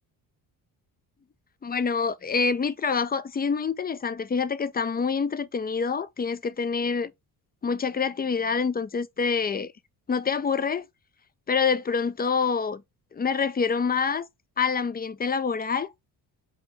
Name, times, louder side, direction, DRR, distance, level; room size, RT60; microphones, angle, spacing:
voice 1, 1.6-7.1 7.6-9.7 10.1-10.9 11.5-12.8 13.1-14.3 14.6-15.9, left 5 dB, 20° left, 0.4 m, -26 dB
5.2 x 2.6 x 3.2 m
supercardioid pair, 65°, 45 cm